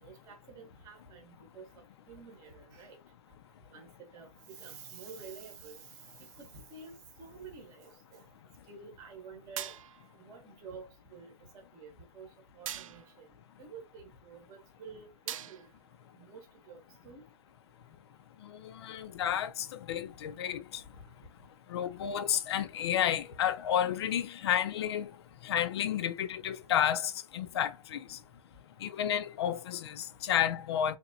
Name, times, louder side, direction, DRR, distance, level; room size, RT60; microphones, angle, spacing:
voice 1, 0.0-1.7 2.1-3.0 3.7-8.2 8.7-9.8 10.2-13.3 13.6-15.6 16.1-17.2 20.9-21.0, right 5 dB, 20° right, 1.0 m, -50 dB
sound 1, 9.6-10.2 12.7-13.2 15.3-15.9, right 11 dB, 55° right, 0.4 m, -41 dB
voice 2, 18.4-20.6 21.7-25.1 25.4-28.2 28.8-31.0, left 10 dB, 40° left, 0.5 m, -31 dB
4.0 x 3.3 x 2.6 m
hypercardioid pair, 165°, 20 cm